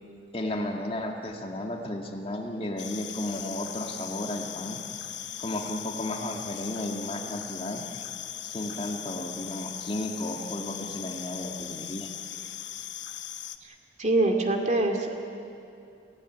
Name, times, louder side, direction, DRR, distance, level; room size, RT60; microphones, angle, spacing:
voice 1, 0.3-4.8 5.4-7.8 8.4-12.1, left 1 dB, 30° left, 2 dB, 2.0 m, -33 dB
sound 1, 2.8-13.6, left 11 dB, 85° left, 1.1 m, -39 dB
voice 2, 13.6-15.1, right 2 dB, 40° right, 3 dB, 2.4 m, -25 dB
28.5 x 16.0 x 9.4 m, 2.7 s
head